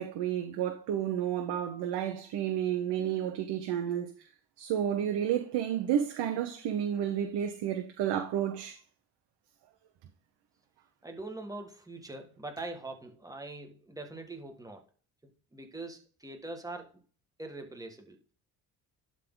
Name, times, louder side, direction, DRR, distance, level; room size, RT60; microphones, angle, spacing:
voice 1, 0.0-4.1 4.6-8.8, right 10 dB, 80° right, 1.1 m, -31 dB
voice 2, 11.0-14.9 15.2-16.9 17.4-18.2, right 2 dB, 10° right, 1.9 m, -43 dB
11.5 x 3.8 x 3.9 m
cardioid pair, 80°, 40 cm